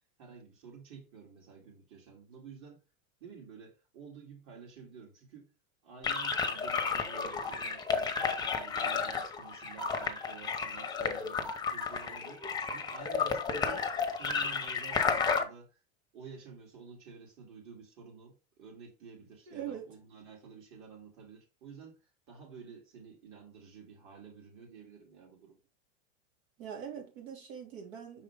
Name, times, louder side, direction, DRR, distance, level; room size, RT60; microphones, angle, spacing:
voice 1, 0.2-2.8 3.2-5.5 5.8-13.9 14.2-15.8 16.1-22.0 22.3-25.6, right 6 dB, 45° right, 3.2 m, -51 dB
sound 1, 6.0-15.4, left 5 dB, 10° left, 0.8 m, -32 dB
voice 2, 19.5-19.8 26.6-28.2, right 8 dB, 75° right, 3.0 m, -42 dB
6.0 x 4.8 x 3.5 m
supercardioid pair, 130°, 39 cm